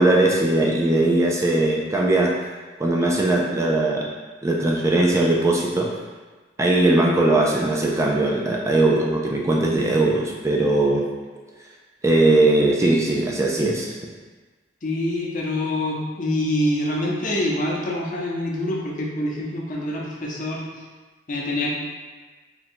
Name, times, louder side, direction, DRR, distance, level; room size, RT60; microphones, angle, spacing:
voice 1, 0.0-2.3 2.8-4.1 4.4-5.9 6.6-11.0 12.0-13.9, right 2 dB, 15° right, -2 dB, 0.3 m, -19 dB
voice 2, 14.8-20.7 21.3-21.7, left 1 dB, 45° left, -2 dB, 0.7 m, -25 dB
3.7 x 2.2 x 4.3 m, 1.3 s
head